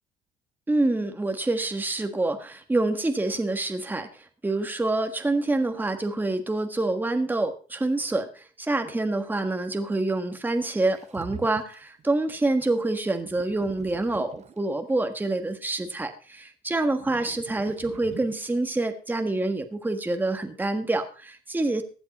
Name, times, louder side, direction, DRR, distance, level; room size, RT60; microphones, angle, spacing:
voice 1, 0.7-21.8, right 2 dB, 10° right, 6 dB, 1.5 m, -27 dB
sound 1, 10.9-12.0 13.3-14.9 16.7-18.6, right 7 dB, 40° right, 1.1 m, -44 dB
16.0 x 9.9 x 4.2 m, 0.37 s
cardioid pair, 110°, 17 cm